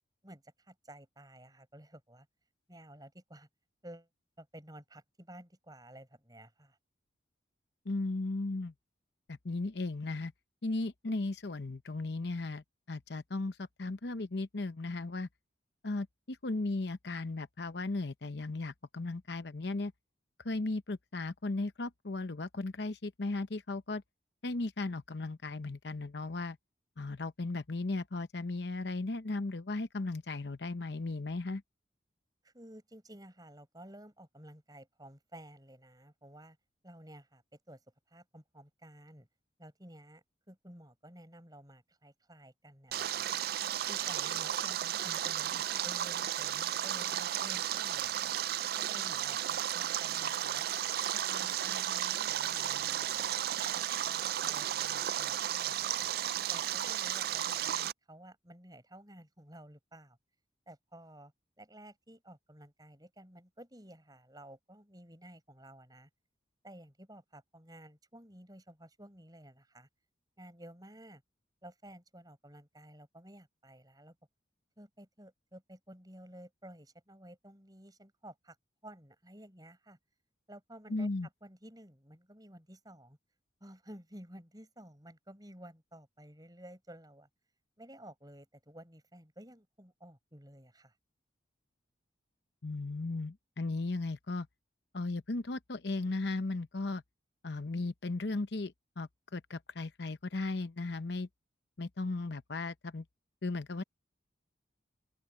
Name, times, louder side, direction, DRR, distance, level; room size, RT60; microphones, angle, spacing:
voice 1, 0.2-2.3 2.7-3.5 3.8-4.1 4.4-6.8 32.4-36.6 36.8-37.8 38.1-39.3 39.6-43.3 43.8-48.3 48.8-50.7 51.1-53.4 53.7-56.1 56.5-60.2 60.7-66.1 66.6-69.9 70.4-71.2 71.6-74.1 74.8-78.6 78.8-80.0 80.5-81.1 81.4-83.2 83.6-87.3 87.8-90.9, right 1 dB, 20° right, 6.9 m, -53 dB
voice 2, 7.8-8.7 9.3-10.3 10.6-15.3 15.8-19.9 20.4-24.0 24.4-26.6 27.0-31.6 80.9-81.3 92.6-94.5 94.9-97.0 97.4-101.3 101.8-103.0 103.4-103.8, left 2 dB, 65° left, 0.8 m, -36 dB
Stream, 42.9-57.9, right 11 dB, 55° right, 0.3 m, -34 dB
open air
head